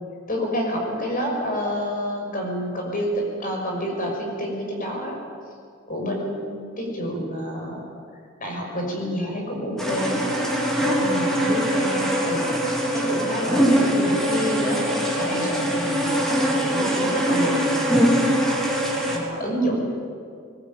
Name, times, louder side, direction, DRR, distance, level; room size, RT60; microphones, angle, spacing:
voice 1, 0.3-5.2 5.9-7.9 8.4-10.3 11.0-14.8 15.1-17.9 19.1-19.8, equal, 40° left, 1 dB, 6.0 m, -28 dB
sound 1, 9.8-19.2, equal, ahead, 3.7 m, -22 dB
21.0 x 20.0 x 9.2 m, 2.2 s
head